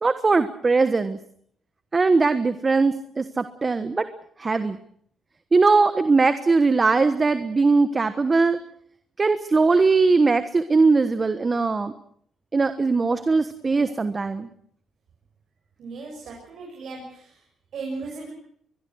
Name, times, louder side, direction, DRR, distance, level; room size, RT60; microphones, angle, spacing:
voice 1, 0.0-1.2 1.9-4.1 4.4-4.8 5.5-8.6 9.2-11.9 12.5-14.5, right 4 dB, 30° right, 11 dB, 1.3 m, -20 dB
voice 2, 15.8-17.3 17.7-18.3, right 3 dB, 65° right, 0 dB, 7.1 m, -36 dB
22.0 x 22.0 x 6.4 m, 0.64 s
cardioid pair, 90°, 0 cm